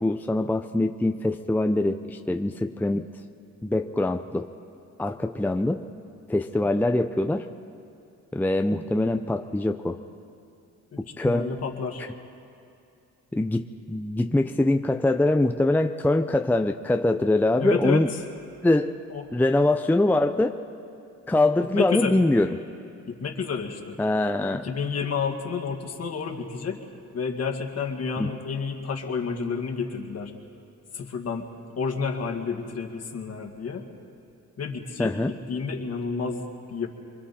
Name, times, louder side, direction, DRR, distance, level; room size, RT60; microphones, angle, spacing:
voice 1, 0.0-3.1 3.6-4.5 5.0-5.8 6.3-7.5 8.3-10.0 11.0-11.5 13.3-18.1 18.6-19.0 19.3-20.6 21.3-22.6 24.0-24.7 28.2-28.3 35.0-35.3, left 2 dB, 5° left, 6 dB, 0.6 m, -23 dB
voice 2, 10.9-12.1 17.6-18.2 19.1-19.2 21.7-22.2 23.1-24.0 24.5-26.8 27.1-30.3 30.9-31.5 31.8-33.8 34.6-36.9, left 5 dB, 55° left, 3 dB, 2.1 m, -30 dB
27.0 x 22.5 x 4.4 m, 2.5 s
cardioid pair, 90°, 30 cm